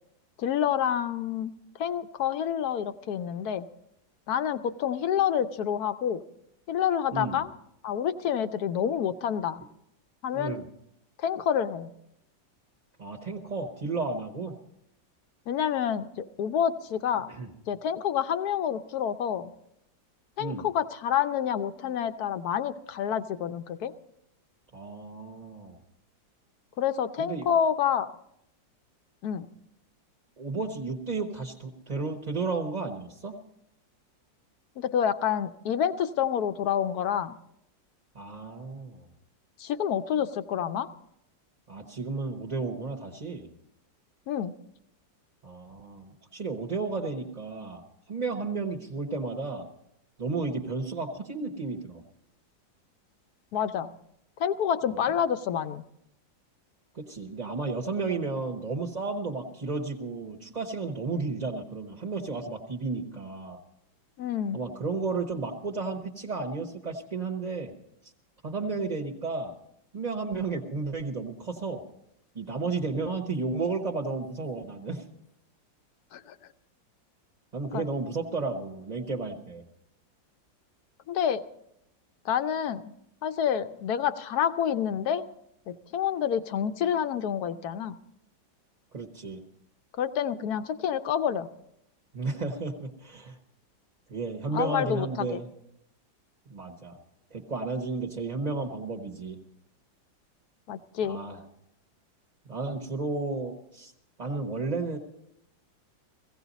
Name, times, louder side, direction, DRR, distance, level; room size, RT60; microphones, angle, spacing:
voice 1, 0.4-1.5 1.8-3.6 4.3-6.2 6.7-7.5 7.8-9.6 10.2-10.6 11.2-11.9 15.5-17.3 17.7-19.5 20.4-23.9 26.8-28.1 29.2-29.5 34.8-37.4 39.6-40.9 44.3-44.5 53.5-53.9 54.4-55.8 64.2-64.6 76.1-76.3 77.7-77.9 81.1-81.4 82.2-82.9 83.2-85.2 85.7-87.9 90.0-91.5 94.5-95.4 100.7-101.2, left 9 dB, 65° left, 10 dB, 1.1 m, -28 dB
voice 2, 10.3-10.6 13.0-14.5 17.3-17.5 20.4-20.7 24.7-25.8 27.2-27.5 30.4-33.4 38.1-39.1 41.7-43.5 45.4-47.8 48.1-49.6 50.2-52.0 54.9-55.0 56.9-63.6 64.5-67.7 68.4-69.5 69.9-71.8 72.3-75.0 77.5-79.6 88.9-89.4 92.1-93.4 94.1-95.5 96.5-97.0 97.3-99.4 101.0-101.4 102.5-103.9 104.2-105.0, right 3 dB, 30° right, 1 dB, 0.9 m, -33 dB
17.0 x 16.0 x 4.0 m, 0.77 s
omnidirectional pair, 2.0 m